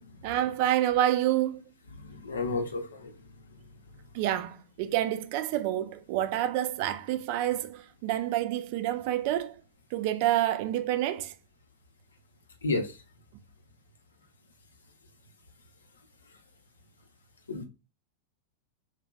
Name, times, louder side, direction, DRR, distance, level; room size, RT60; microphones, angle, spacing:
voice 1, 0.2-1.6 4.1-9.5 9.9-11.3, right 12 dB, 45° right, 0.3 m, -28 dB
voice 2, 2.2-2.9 12.6-12.9 17.5-17.6, left 3 dB, 70° left, 0.6 m, -29 dB
3.2 x 2.3 x 2.3 m
figure-of-eight pair, 90°, 0 cm